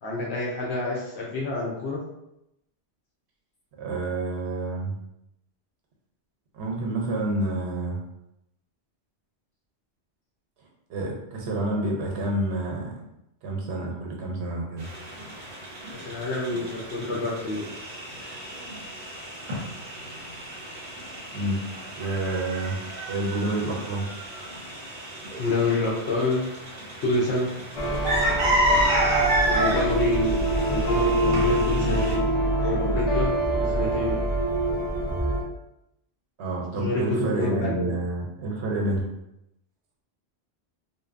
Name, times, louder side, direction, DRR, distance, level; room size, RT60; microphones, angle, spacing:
voice 1, 0.0-2.0 15.9-17.7 25.4-26.4 27.0-27.5 29.5-30.4 30.7-32.3 32.6-34.2 36.8-37.9, left 2 dB, 80° left, -4 dB, 0.9 m, -27 dB
voice 2, 3.8-4.9 6.5-8.0 10.9-13.0 13.4-14.9 21.3-21.6 22.0-22.8 23.1-24.1 36.4-39.1, right 2 dB, 85° right, -1 dB, 0.9 m, -28 dB
sound 1, 14.8-32.2, right 1 dB, 50° right, 0.7 m, -30 dB
sound 2, 27.8-35.4, right 1 dB, 55° left, 0.5 m, -25 dB
2.6 x 2.1 x 2.4 m, 0.84 s
omnidirectional pair, 1.1 m